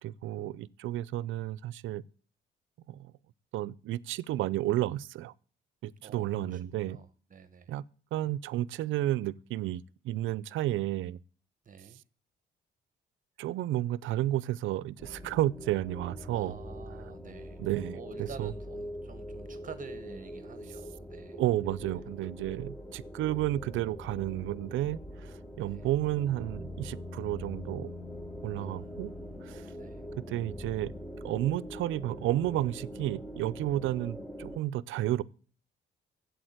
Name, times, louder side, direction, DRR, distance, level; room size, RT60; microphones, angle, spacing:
voice 1, 0.0-2.0 2.9-3.1 3.5-5.3 5.8-7.0 7.7-7.8 8.1-11.2 13.4-16.5 17.6-18.5 21.4-27.9 28.4-29.1 29.4-29.7 30.3-30.9 31.2-35.2, right 14 dB, 80° right, 0.5 m, -32 dB
voice 2, 6.0-7.7 11.6-12.0 16.3-17.6 17.9-21.4 25.7-25.9 28.6-29.5 29.8-30.1, right 7 dB, 40° right, 0.9 m, -49 dB
sound 1, 15.0-34.6, equal, 5° left, 1.1 m, -43 dB
8.2 x 7.9 x 7.8 m
cardioid pair, 90°, 20 cm